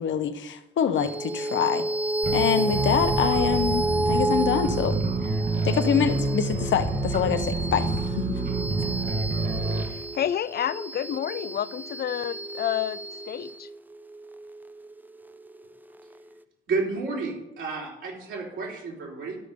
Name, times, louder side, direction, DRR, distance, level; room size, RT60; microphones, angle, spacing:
voice 1, 0.0-1.9 2.3-5.0 5.6-7.9 8.1-8.4, left 8 dB, 70° left, 10 dB, 0.8 m, -25 dB
sound 1, 1.0-15.7, right 2 dB, 10° right, 0.5 m, -31 dB
sound 2, 2.2-9.8, right 2 dB, 45° right, 1.2 m, -28 dB
voice 2, 9.7-13.7, left 10 dB, 50° left, 18 dB, 0.5 m, -30 dB
voice 3, 16.7-19.4, right 4 dB, 75° right, -3 dB, 3.6 m, -31 dB
12.0 x 5.1 x 5.1 m, 0.94 s
cardioid pair, 85°, 20 cm